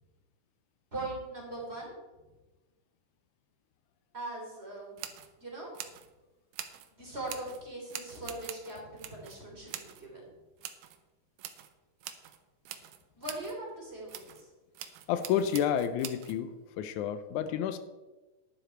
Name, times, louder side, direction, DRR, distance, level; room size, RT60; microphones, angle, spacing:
voice 1, 0.9-1.9 4.1-4.9 5.4-5.7 6.9-10.3 13.1-14.5, right 2 dB, 20° right, -3 dB, 3.3 m, -40 dB
sound 1, 5.0-5.3 5.7-6.1 6.5-6.9 7.3-7.6 7.9-9.4 9.7-10.1 10.6-11.0 11.4-11.7 12.0-12.4 12.6-13.6 14.1-14.4 14.7-16.4, right 11 dB, 85° right, 2.3 m, -44 dB
voice 2, 15.1-17.8, left 9 dB, 85° left, 11 dB, 2.1 m, -30 dB
11.5 x 10.5 x 4.5 m, 1.2 s
omnidirectional pair, 3.5 m